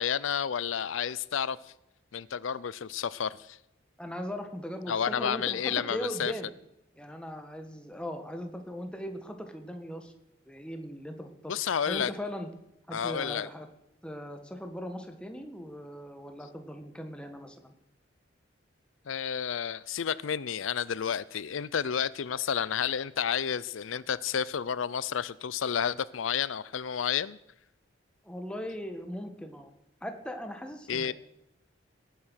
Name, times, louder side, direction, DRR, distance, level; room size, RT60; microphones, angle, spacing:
voice 1, 0.0-1.7 2.1-3.6 4.9-6.3 11.5-12.1 12.9-13.5 19.1-27.4 30.9-31.1, left 8 dB, 90° left, 0.5 m, -31 dB
voice 2, 4.0-6.5 7.0-10.1 10.5-11.5 11.9-12.5 12.9-13.7 14.0-17.7 28.2-29.7 30.0-31.1, equal, 5° left, 1.6 m, -39 dB
19.0 x 9.2 x 6.4 m
head